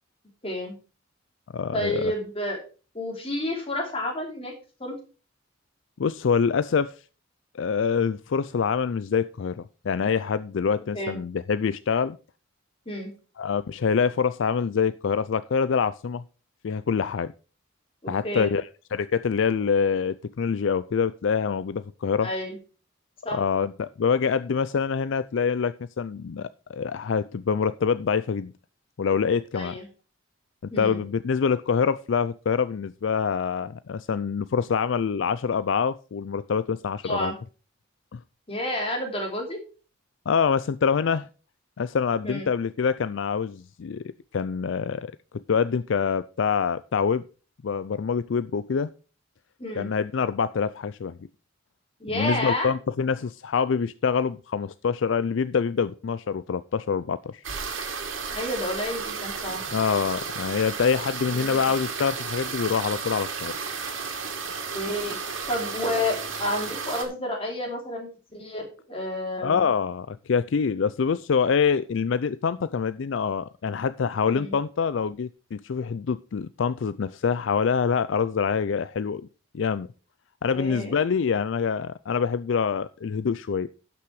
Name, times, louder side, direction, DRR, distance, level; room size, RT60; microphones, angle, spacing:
voice 1, 0.4-0.7 1.7-2.6 2.9-4.5 4.8-5.0 10.9-11.2 12.8-13.1 18.0-18.5 22.2-22.6 23.2-23.4 29.5-29.9 30.7-31.0 37.0-37.4 38.5-39.6 42.2-42.5 49.6-49.9 52.0-52.7 58.3-59.6 64.7-69.7 74.2-74.6 80.5-80.9, left 1 dB, 30° left, 3.1 m, -30 dB
voice 2, 1.5-2.1 6.0-7.0 7.5-12.2 13.4-16.2 16.6-17.3 18.1-22.3 23.3-28.5 29.0-29.7 30.8-37.3 38.1-38.2 40.3-41.3 41.8-44.0 44.3-45.1 45.5-47.2 47.6-48.9 49.8-51.2 52.1-57.4 59.7-63.6 69.4-79.2 79.5-79.9 80.4-83.7, left 6 dB, 65° left, 0.4 m, -25 dB
sound 1, 57.4-67.0, right 5 dB, 75° right, 2.2 m, -33 dB
12.0 x 6.1 x 4.8 m
head